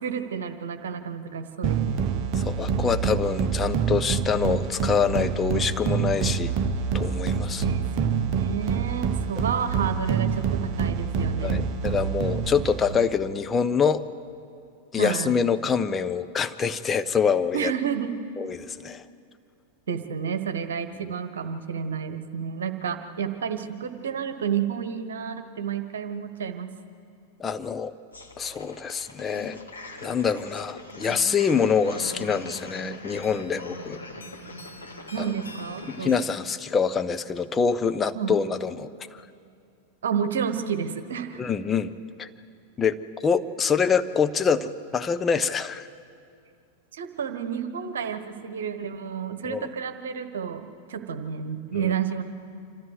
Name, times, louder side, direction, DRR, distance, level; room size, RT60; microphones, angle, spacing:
voice 1, 0.0-2.0 7.6-11.7 15.0-15.4 17.5-18.1 19.9-26.7 35.1-36.2 38.1-38.3 40.0-41.4 46.9-52.2, right 7 dB, 65° right, 8 dB, 1.2 m, -30 dB
sound 1, 1.6-13.1, right 6 dB, 35° right, 1.1 m, -26 dB
voice 2, 2.4-6.5 6.9-7.7 11.4-14.0 14.9-17.7 18.4-19.0 21.0-21.1 27.4-27.9 28.4-29.6 30.0-34.0 35.2-35.3 35.9-39.2 41.4-41.9 42.2-42.3 42.8-45.9 49.4-49.7, left 6 dB, 20° left, 10 dB, 0.7 m, -25 dB
sound 2, 28.1-36.2, left 1 dB, 75° left, 2.0 m, -41 dB
26.5 x 14.0 x 8.0 m, 2.3 s
figure-of-eight pair, 90°, 0 cm